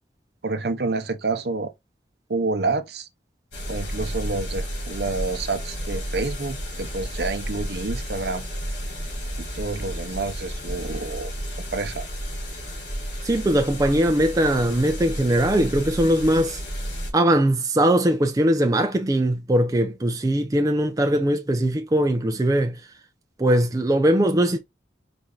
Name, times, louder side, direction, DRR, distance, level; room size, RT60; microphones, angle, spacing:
voice 1, 0.4-1.7 2.3-3.1 3.7-8.5 9.5-11.3 11.7-12.1, right 3 dB, 60° right, 0.7 m, -28 dB
sound 1, 3.5-17.1, equal, 80° left, 2.4 m, -32 dB
voice 2, 13.2-16.6 17.1-22.8 23.4-24.6, right 1 dB, 20° right, 0.4 m, -20 dB
4.3 x 2.6 x 3.7 m
head